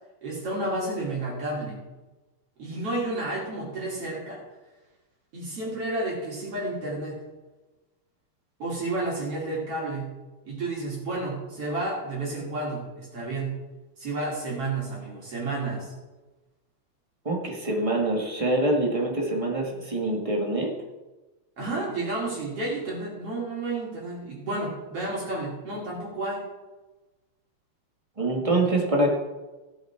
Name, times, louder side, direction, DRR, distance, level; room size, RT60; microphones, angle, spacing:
voice 1, 0.2-1.8 2.6-4.4 5.3-7.2 8.6-10.1 10.5-13.6 14.0-15.9 21.6-26.4, right 2 dB, 50° right, -5 dB, 3.6 m, -31 dB
voice 2, 17.2-20.7 28.2-29.1, right 1 dB, 15° right, -1 dB, 1.2 m, -25 dB
16.5 x 7.2 x 4.6 m, 1.1 s
omnidirectional pair, 3.5 m